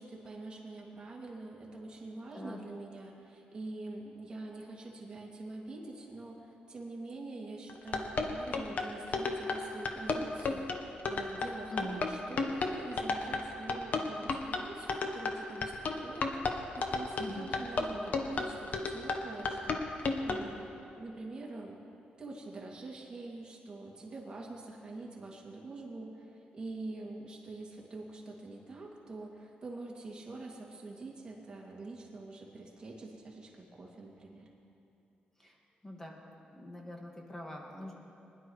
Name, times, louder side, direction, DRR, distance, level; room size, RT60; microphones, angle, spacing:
voice 1, 0.0-21.8 22.2-34.5, right 2 dB, 30° right, -3 dB, 2.3 m, -45 dB
sound 1, 7.7-20.4, left 4 dB, 55° left, 1.0 m, -33 dB
voice 2, 11.7-12.0 17.2-17.5 35.4-35.5 35.8-37.9, left 1 dB, 15° left, -1 dB, 1.7 m, -43 dB
21.0 x 11.0 x 3.2 m, 2.7 s
cardioid pair, 120°, 3 cm